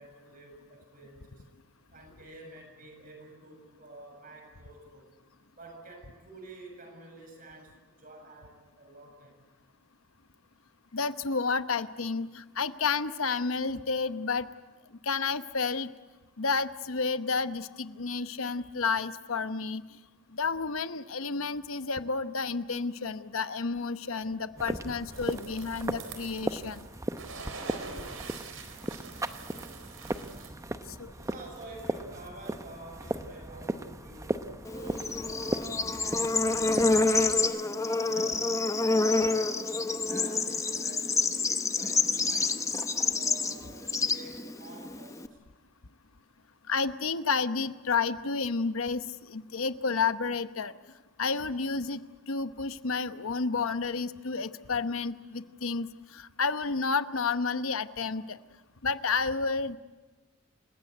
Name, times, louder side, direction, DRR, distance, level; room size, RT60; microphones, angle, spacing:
voice 1, 0.0-1.5 1.9-5.1 5.6-9.4 24.3-24.4 31.1-35.7 36.2-38.5 38.8-41.1 41.4-42.6 43.1-45.4, right 2 dB, 45° right, 2 dB, 7.1 m, -49 dB
voice 2, 10.9-14.5 15.0-15.9 16.4-19.8 20.3-26.8 31.0-31.1 46.7-50.7 51.2-52.0 52.3-58.4 58.8-59.8, left 4 dB, 90° left, 11 dB, 0.9 m, -31 dB
sound 1, 24.6-37.4, right 1 dB, 15° right, 0.8 m, -37 dB
sound 2, 25.1-26.9 27.2-30.5, right 4 dB, 80° right, 4.1 m, -44 dB
Bird / Insect, 34.7-45.3, left 3 dB, 15° left, 0.8 m, -28 dB
28.5 x 16.0 x 9.4 m, 1.2 s
head